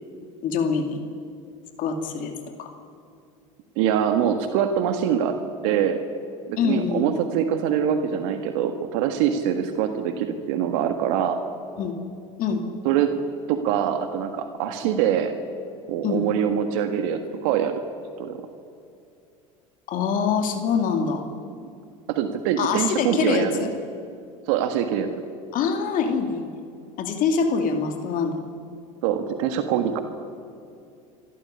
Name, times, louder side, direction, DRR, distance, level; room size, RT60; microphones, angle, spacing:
voice 1, 0.4-1.0 1.8-2.3 2.6-2.7 6.6-7.0 11.8-12.0 12.4-12.6 16.0-16.2 19.9-21.2 22.6-23.7 25.5-26.5 27.0-28.4, left 6 dB, 55° left, 5 dB, 2.5 m, -24 dB
voice 2, 3.7-5.4 5.6-6.0 6.5-11.4 12.8-13.1 13.5-15.3 15.9-17.7 18.2-18.4 22.1-23.7 24.5-25.1 29.0-30.0, right 9 dB, 70° right, 7 dB, 1.6 m, -24 dB
25.0 x 13.0 x 9.8 m, 2.5 s
hypercardioid pair, 85°, 17 cm